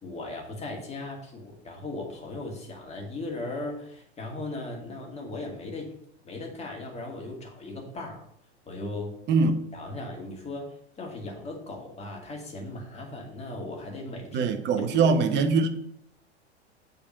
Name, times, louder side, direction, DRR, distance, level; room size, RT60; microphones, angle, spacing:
voice 1, 0.0-5.9 6.2-8.2 8.7-9.1 9.7-15.1, left 2 dB, 20° left, 2.2 m, -37 dB
voice 2, 9.3-9.6 14.3-15.7, right 4 dB, 30° right, 0.8 m, -22 dB
7.0 x 3.9 x 6.3 m
figure-of-eight pair, 90°, 35 cm